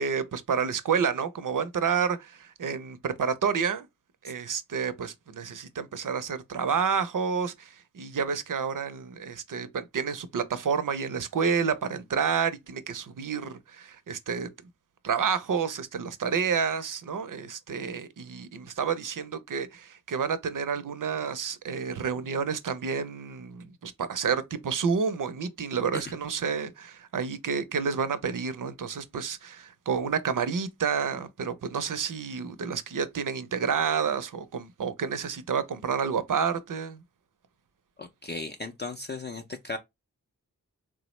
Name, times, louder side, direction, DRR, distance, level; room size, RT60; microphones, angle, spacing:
voice 1, 0.0-3.9 4.2-7.7 7.9-14.5 15.0-37.0, right 6 dB, 65° right, 0.5 m, -29 dB
voice 2, 38.0-39.8, left 3 dB, 30° left, 0.4 m, -36 dB
3.4 x 2.0 x 2.9 m
wide cardioid pair, 45°, 35 cm